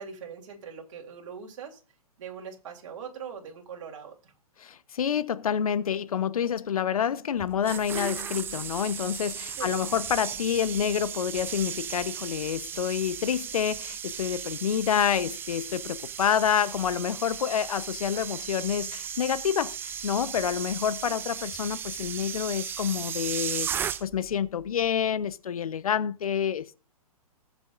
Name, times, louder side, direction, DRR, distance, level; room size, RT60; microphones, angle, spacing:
voice 1, 0.0-1.8 2.2-4.3 9.6-9.9 21.0-21.2, right 7 dB, 55° right, 3.2 m, -41 dB
voice 2, 4.6-26.7, left 8 dB, 65° left, 0.9 m, -28 dB
sound 1, 7.4-24.3 24.6-24.9, right 8 dB, 10° right, 0.4 m, -36 dB
19.5 x 7.3 x 2.5 m
hypercardioid pair, 125°, 19 cm